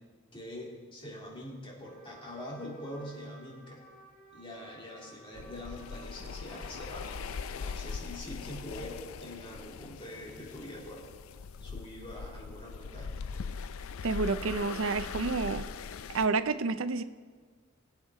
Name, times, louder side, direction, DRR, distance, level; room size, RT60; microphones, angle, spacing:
voice 1, 0.3-3.8 4.3-11.0 11.6-13.3, left 1 dB, 25° left, -4 dB, 2.8 m, -44 dB
Trumpet, 1.8-8.0, right 2 dB, 5° left, 3.9 m, -56 dB
sound 1, 5.3-16.3, left 5 dB, 85° left, 0.5 m, -41 dB
voice 2, 14.0-15.7 16.1-17.0, right 4 dB, 70° right, 12 dB, 0.5 m, -29 dB
22.0 x 8.0 x 3.7 m, 1.5 s
head